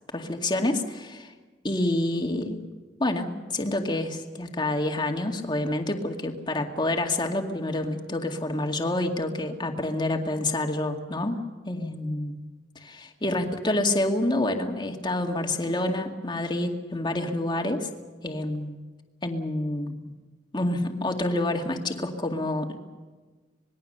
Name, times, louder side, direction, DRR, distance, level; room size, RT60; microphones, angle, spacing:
voice 1, 0.1-1.3 1.6-2.6 3.0-12.3 12.8-17.9 18.2-18.7 19.2-19.9 20.5-22.8, left 1 dB, 25° left, 3 dB, 2.2 m, -28 dB
26.0 x 20.5 x 6.7 m, 1.3 s
head